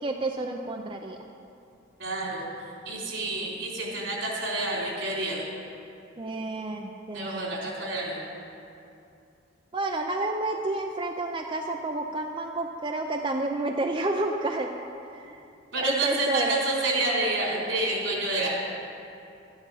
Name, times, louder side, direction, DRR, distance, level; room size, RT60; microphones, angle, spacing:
voice 1, 0.0-1.2 6.2-7.5 9.7-14.7 15.1-15.4 15.8-16.6, right 2 dB, 25° right, 2 dB, 0.6 m, -30 dB
voice 2, 2.0-2.5 2.9-5.4 7.1-8.2 15.7-18.5, right 2 dB, 85° right, -3 dB, 3.8 m, -28 dB
13.0 x 10.5 x 5.7 m, 2.6 s
head